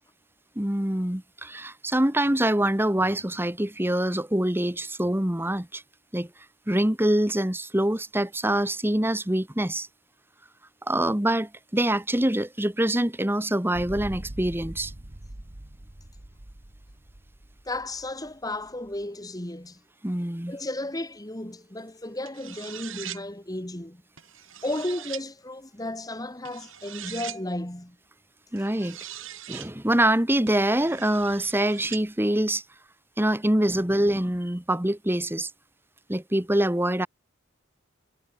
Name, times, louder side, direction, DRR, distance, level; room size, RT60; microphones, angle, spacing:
voice 1, 0.5-5.8 6.1-6.3 6.7-9.9 10.9-14.9 20.0-20.5 28.5-29.0 29.5-32.6 33.2-35.5 36.1-37.1, right 1 dB, 10° right, 1.3 m, -25 dB
sound 1, 13.7-19.0, right 1 dB, 35° right, 1.4 m, -42 dB
voice 2, 17.7-19.8 20.5-24.0 24.6-28.0, left 1 dB, 15° left, 1.8 m, -34 dB
sound 2, 22.2-23.2 24.2-25.2 26.4-27.4 28.6-29.7 30.5-32.0, right 12 dB, 65° right, 2.9 m, -41 dB
head